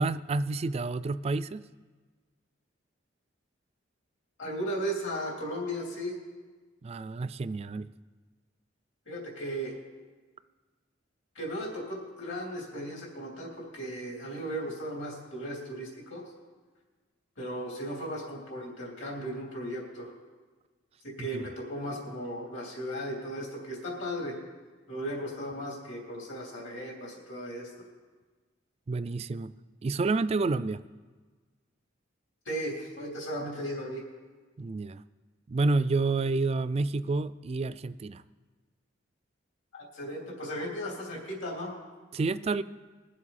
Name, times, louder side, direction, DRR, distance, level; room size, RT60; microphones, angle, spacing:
voice 1, 0.0-1.6 6.8-7.9 21.2-21.4 28.9-29.5 29.8-30.8 34.6-35.0 35.5-38.2 42.1-42.6, right 3 dB, 30° right, 15 dB, 0.3 m, -29 dB
voice 2, 4.4-6.2 9.1-9.7 11.3-16.2 17.4-20.1 21.0-24.3 24.9-27.7 32.4-34.0 39.7-41.7, equal, 70° left, -2 dB, 3.3 m, -36 dB
21.5 x 7.4 x 4.2 m, 1.4 s
head